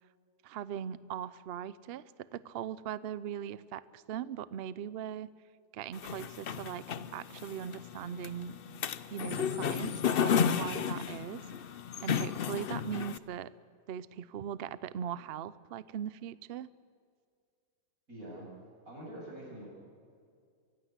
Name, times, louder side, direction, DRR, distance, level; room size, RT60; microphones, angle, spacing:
voice 1, 0.4-5.3 5.7-6.9 7.1-8.6 9.1-11.4 12.0-13.5 13.9-16.7, right 9 dB, 75° right, 17 dB, 0.5 m, -40 dB
sound 1, 5.9-13.2, left 7 dB, 70° left, 0.5 m, -33 dB
voice 2, 18.1-18.5 18.8-19.7, right 1 dB, 50° right, -4 dB, 8.4 m, -45 dB
24.5 x 16.0 x 8.1 m, 2.2 s
omnidirectional pair, 1.8 m